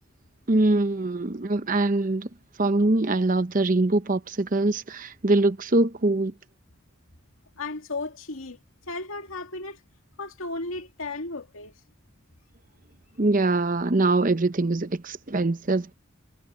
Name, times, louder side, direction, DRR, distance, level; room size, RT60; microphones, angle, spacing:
voice 1, 0.5-2.3 2.6-6.3 13.2-15.9, right 2 dB, 40° right, 0.8 m, -23 dB
voice 2, 7.6-8.6 8.9-9.8 10.2-11.7, left 3 dB, 90° left, 2.3 m, -34 dB
head